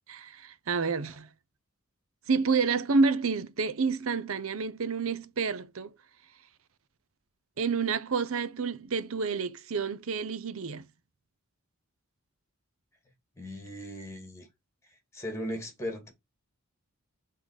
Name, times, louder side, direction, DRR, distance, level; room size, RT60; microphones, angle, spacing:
voice 1, 0.1-1.3 2.3-5.9 7.6-10.9, right 4 dB, 70° right, 0.7 m, -29 dB
voice 2, 13.4-14.5 14.9-16.1, equal, 15° left, 2.6 m, -38 dB
6.2 x 3.9 x 4.9 m
head